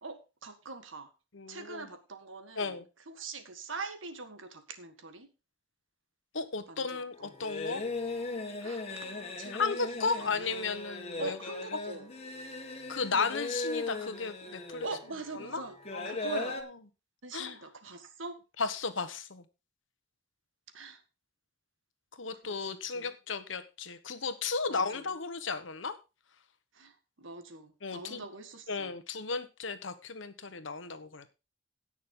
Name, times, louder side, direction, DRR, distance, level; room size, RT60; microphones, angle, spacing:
voice 1, 0.0-1.1 1.5-2.8 3.1-5.3 6.7-7.3 8.6-10.7 11.2-12.1 14.8-15.8 16.0-16.6 17.2-18.4 20.7-21.0 22.4-22.7 22.9-23.1 24.7-25.1 26.7-29.0, right 3 dB, 85° right, 9 dB, 1.7 m, -43 dB
voice 2, 1.3-1.9 2.6-2.8 6.3-7.8 9.5-11.4 12.9-14.9 15.4-15.6 15.9-16.6 17.3-17.6 18.6-19.4 22.2-26.0 27.8-28.2 28.7-31.2, left 4 dB, 75° left, 11 dB, 1.2 m, -34 dB
sound 1, 7.1-16.6, left 3 dB, 35° left, 1.7 m, -38 dB
17.0 x 6.4 x 3.8 m, 0.29 s
head